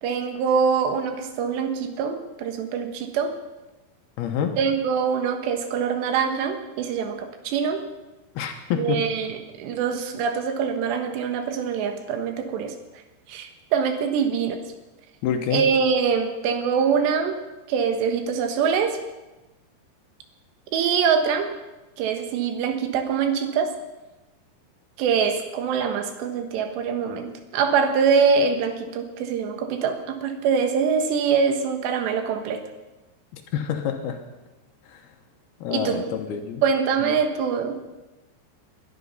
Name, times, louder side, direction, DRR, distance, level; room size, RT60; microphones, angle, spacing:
voice 1, 0.0-3.4 4.6-7.8 8.8-12.8 13.3-14.6 15.5-17.4 17.7-19.0 20.7-21.5 22.0-23.7 25.0-32.6 35.7-36.0 36.6-37.8, right 6 dB, 75° right, 7 dB, 3.5 m, -24 dB
voice 2, 4.2-4.6 8.4-9.0 15.2-15.6 33.3-34.2 34.9-35.0 35.6-36.6 37.0-37.1, left 8 dB, 70° left, 5 dB, 2.7 m, -27 dB
20.0 x 12.0 x 5.6 m, 1.1 s
omnidirectional pair, 5.2 m